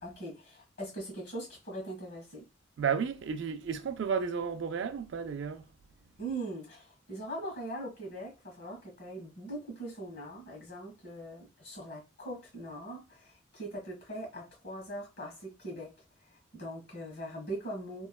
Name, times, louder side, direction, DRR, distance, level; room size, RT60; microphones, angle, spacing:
voice 1, 0.0-2.5 6.2-15.9 16.2-18.1, right 1 dB, 55° left, 1.4 m, -41 dB
voice 2, 2.8-5.6, right 6 dB, 70° right, 0.3 m, -32 dB
3.0 x 2.1 x 2.3 m
head